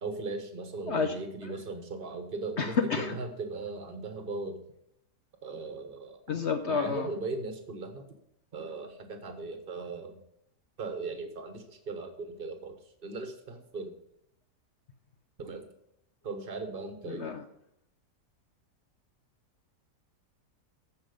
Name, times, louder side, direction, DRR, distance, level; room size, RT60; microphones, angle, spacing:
voice 1, 0.0-4.6 5.4-6.2 6.7-8.1 8.5-10.2 10.8-14.0 15.4-15.7 16.2-17.3, right 3 dB, 35° right, 6 dB, 1.3 m, -38 dB
voice 2, 2.6-3.2 6.3-7.1 17.1-17.4, left 5 dB, 55° left, 7 dB, 0.8 m, -29 dB
14.5 x 5.3 x 5.2 m, 0.77 s
omnidirectional pair, 1.8 m